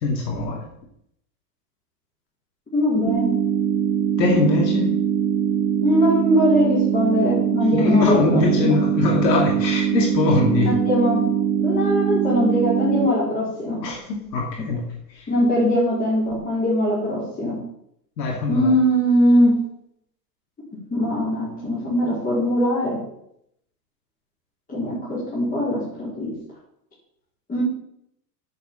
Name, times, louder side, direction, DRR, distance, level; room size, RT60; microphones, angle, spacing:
voice 1, 0.0-0.6 4.2-4.9 7.7-10.7 13.8-14.0 14.3-14.8 18.2-18.7, left 3 dB, 85° left, 0 dB, 2.6 m, -21 dB
voice 2, 2.7-3.3 5.8-8.8 10.6-11.2 11.5-13.8 15.3-17.6 18.5-19.6 20.9-23.0 24.7-26.3 27.5-27.6, equal, 15° left, -8 dB, 4.6 m, -21 dB
sound 1, 3.1-13.1, right 9 dB, 35° right, 1.0 m, -22 dB
8.4 x 6.7 x 7.2 m, 0.75 s
supercardioid pair, 125°, 49 cm